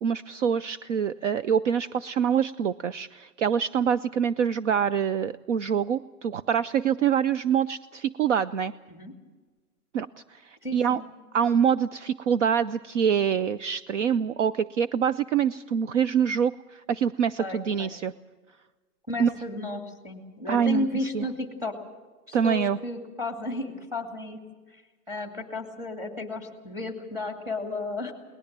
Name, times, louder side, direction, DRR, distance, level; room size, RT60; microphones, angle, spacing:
voice 1, 0.0-8.7 9.9-11.0 11.3-18.1 19.2-19.3 20.5-20.9 21.1-21.3 22.3-22.8, right 8 dB, 50° right, 14 dB, 0.6 m, -25 dB
voice 2, 10.6-11.0 17.4-17.9 19.1-21.7 22.3-24.4 24.7-24.8 25.1-28.1, left 2 dB, 5° right, 4 dB, 2.4 m, -33 dB
21.5 x 19.5 x 7.5 m, 1.3 s
hypercardioid pair, 150°, 46 cm